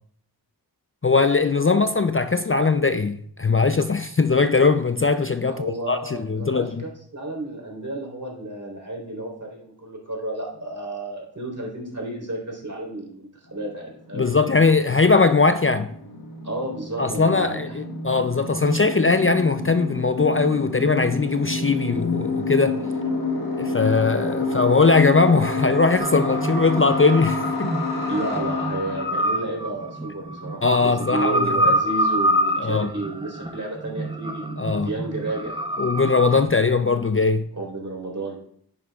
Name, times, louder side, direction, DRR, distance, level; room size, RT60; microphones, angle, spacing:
voice 1, 1.0-6.8 14.1-15.9 17.0-22.8 23.6-27.8 30.6-31.7 32.6-32.9 34.6-34.9 35.8-37.5, left 4 dB, 30° left, 0.4 m, -20 dB
voice 2, 5.5-14.3 16.4-17.8 28.1-34.4 34.7-35.6 37.6-38.4, right 2 dB, 45° right, 3.8 m, -31 dB
sound 1, 13.5-13.6 13.8-29.1, left 2 dB, 65° left, 2.5 m, -29 dB
sound 2, 26.0-36.4, equal, 10° right, 0.9 m, -26 dB
10.0 x 9.6 x 2.4 m
wide cardioid pair, 40°, 41 cm